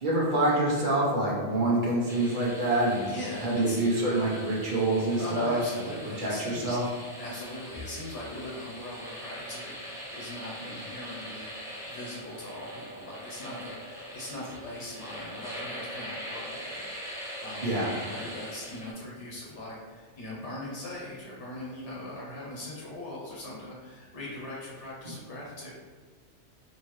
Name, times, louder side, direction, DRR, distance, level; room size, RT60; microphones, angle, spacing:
voice 1, 0.0-3.0 3.4-5.6 6.2-6.8 17.6-18.0, right 2 dB, 50° right, -5 dB, 0.9 m, -26 dB
sound 1, 2.1-18.9, equal, 5° right, 0.5 m, -42 dB
voice 2, 3.1-3.8 5.2-6.8 7.2-25.7, left 1 dB, 80° left, -5 dB, 1.1 m, -41 dB
3.7 x 2.8 x 3.0 m, 1.5 s
omnidirectional pair, 1.2 m